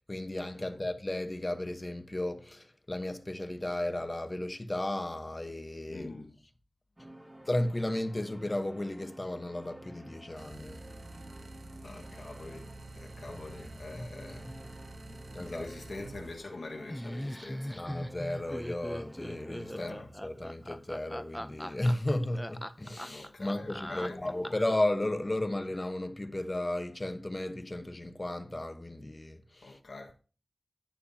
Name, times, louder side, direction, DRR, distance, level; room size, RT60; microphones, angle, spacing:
voice 1, 0.0-6.1 7.5-10.8 13.3-13.6 13.9-14.1 15.3-15.7 17.7-19.9 20.2-29.8, left 1 dB, 25° left, 1.0 m, -34 dB
voice 2, 5.9-6.3 11.8-14.6 15.1-17.8 19.7-20.1 23.1-24.6 29.6-30.1, left 2 dB, 80° left, 1.5 m, -45 dB
sound 1, 7.0-20.0, right 1 dB, 20° right, 2.0 m, -52 dB
sound 2, 10.4-16.4, right 2 dB, 90° right, 0.8 m, -48 dB
Laughter, 16.9-24.8, equal, 5° left, 0.5 m, -40 dB
11.5 x 9.2 x 2.8 m
wide cardioid pair, 90°, 0 cm